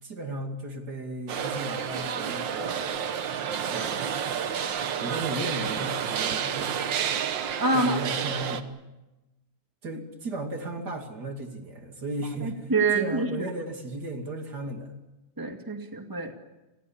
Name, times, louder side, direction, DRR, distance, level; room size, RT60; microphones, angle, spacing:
voice 1, 0.0-3.1 3.7-4.1 5.0-6.8 7.7-8.6 9.8-14.9, right 2 dB, 60° right, 4 dB, 3.1 m, -35 dB
sound 1, 1.3-8.6, right 8 dB, 75° right, 1.9 m, -30 dB
voice 2, 7.6-8.0 12.4-13.5 15.4-16.3, right 3 dB, 10° right, 4 dB, 2.2 m, -26 dB
30.0 x 21.0 x 7.3 m, 1.0 s
omnidirectional pair, 2.0 m